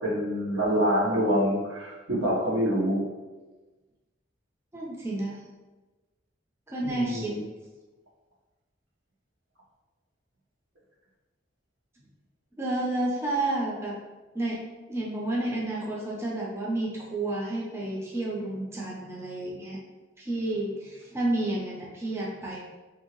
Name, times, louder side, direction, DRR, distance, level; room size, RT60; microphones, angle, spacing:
voice 1, 0.0-3.0 6.8-7.4, equal, 90° right, -5 dB, 1.0 m, -26 dB
voice 2, 4.7-5.4 6.7-7.4 12.6-14.0 14.3-14.6 14.9-19.8 20.2-22.6, right 2 dB, 15° right, -4 dB, 0.4 m, -30 dB
2.9 x 2.6 x 3.0 m, 1.2 s
head